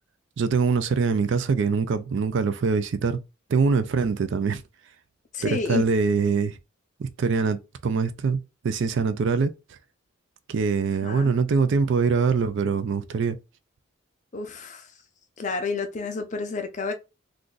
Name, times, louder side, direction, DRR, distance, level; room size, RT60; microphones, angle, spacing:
voice 1, 0.4-3.2 3.5-4.6 5.4-6.6 7.0-9.5 10.5-13.4, right 5 dB, 55° right, 0.3 m, -23 dB
voice 2, 5.3-5.9 11.0-11.3 14.3-14.9 15.4-16.9, left 4 dB, 35° left, 0.4 m, -30 dB
2.4 x 2.4 x 3.7 m
head